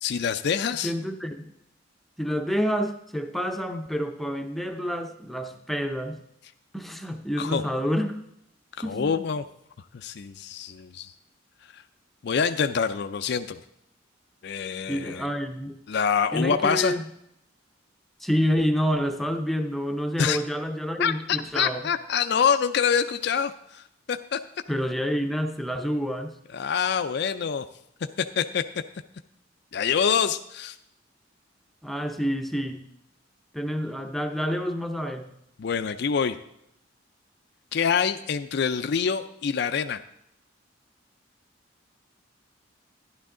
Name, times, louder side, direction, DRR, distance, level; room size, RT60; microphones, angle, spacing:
voice 1, 0.0-0.9 7.4-7.6 8.8-9.5 9.9-11.1 11.7-11.8 12.2-13.6 14.4-15.3 15.9-16.9 20.2-20.4 21.0-24.4 26.5-27.7 28.3-28.6 29.7-30.8 35.6-36.4 37.7-40.0, left 6 dB, 60° left, 9 dB, 0.4 m, -26 dB
voice 2, 0.8-1.4 2.2-6.2 6.7-8.2 8.8-9.1 14.9-15.8 16.3-17.1 18.2-21.9 24.7-26.3 31.8-32.8 33.5-35.3, equal, ahead, 5 dB, 0.6 m, -28 dB
12.0 x 11.0 x 3.7 m, 0.78 s
head